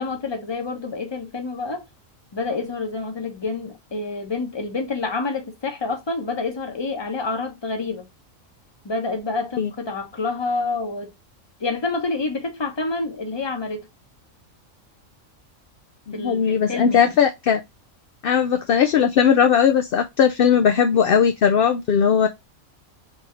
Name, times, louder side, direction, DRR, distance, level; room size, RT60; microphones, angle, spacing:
voice 1, 0.0-1.8 2.3-8.1 8.8-11.1 11.6-13.9 16.1-17.1, left 3 dB, 25° left, 0.9 m, -28 dB
voice 2, 16.1-17.6 18.2-22.3, left 7 dB, 60° left, 0.6 m, -18 dB
4.1 x 3.4 x 3.1 m
omnidirectional pair, 1.4 m